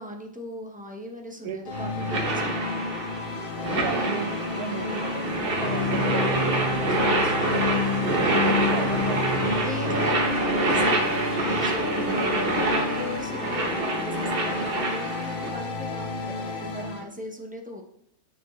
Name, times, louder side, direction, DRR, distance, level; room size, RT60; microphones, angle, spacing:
voice 1, 0.0-2.8 8.6-8.7 9.6-11.3 11.6-17.8, left 1 dB, 10° right, 1 dB, 0.4 m, -38 dB
sound 1, 1.6-17.0, left 3 dB, 45° left, 0.8 m, -30 dB
sound 2, 1.7-15.5, right 2 dB, 45° right, 1.1 m, -26 dB
voice 2, 3.7-7.0 8.2-9.3 9.8-10.2, right 9 dB, 85° right, 10 dB, 1.1 m, -36 dB
9.7 x 4.6 x 3.1 m, 0.71 s
omnidirectional pair, 1.6 m